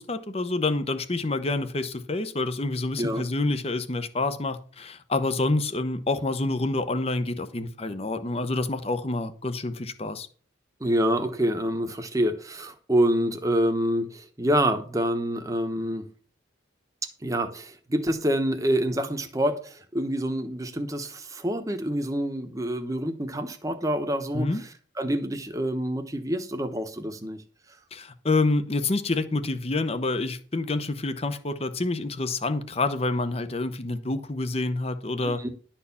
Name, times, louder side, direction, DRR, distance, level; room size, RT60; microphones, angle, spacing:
voice 1, 0.0-10.3 24.3-24.6 27.9-35.4, left 2 dB, 30° left, 0.8 m, -27 dB
voice 2, 10.8-16.0 17.2-24.7 25.0-27.4 35.2-35.5, right 1 dB, 15° right, 1.0 m, -27 dB
11.5 x 4.5 x 7.0 m
head